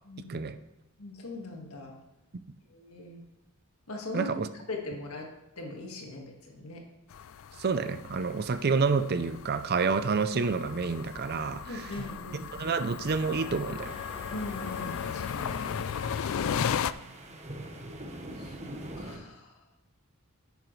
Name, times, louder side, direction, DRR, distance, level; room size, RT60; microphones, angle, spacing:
voice 1, 0.0-0.4 1.0-2.0 2.7-3.2 3.9-4.3 4.7-5.3 5.6-6.8 11.7-12.5 14.3-15.8 16.4-17.3 18.4-19.5, left 2 dB, 85° left, 1 dB, 1.9 m, -41 dB
voice 2, 4.1-4.5 7.6-12.0 12.5-13.9 15.8-15.9, right 4 dB, 45° right, 12 dB, 0.5 m, -29 dB
sound 1, 7.1-16.9, left 7 dB, 65° left, 0.4 m, -36 dB
Sliding door, 11.0-11.2 11.5-16.5, left 2 dB, 25° left, 1.1 m, -49 dB
sound 2, 13.8-19.2, right 1 dB, 30° right, 1.1 m, -44 dB
10.5 x 9.1 x 3.2 m, 0.91 s
head